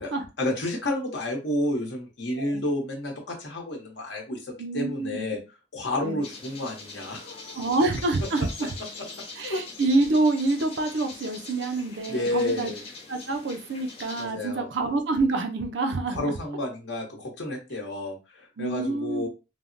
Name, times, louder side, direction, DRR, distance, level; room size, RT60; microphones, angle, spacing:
voice 1, 0.4-5.4 5.7-7.7 9.4-9.6 12.1-12.8 14.2-14.7 16.1-19.3, left 1 dB, 75° left, 0.9 m, -30 dB
voice 2, 4.6-5.4 6.0-6.2 7.6-8.7 9.4-12.7 13.1-16.3 18.6-19.3, right 3 dB, 75° right, 0.4 m, -27 dB
sound 1, 6.2-14.3, left 3 dB, 30° left, 0.7 m, -43 dB
3.3 x 2.0 x 2.5 m
head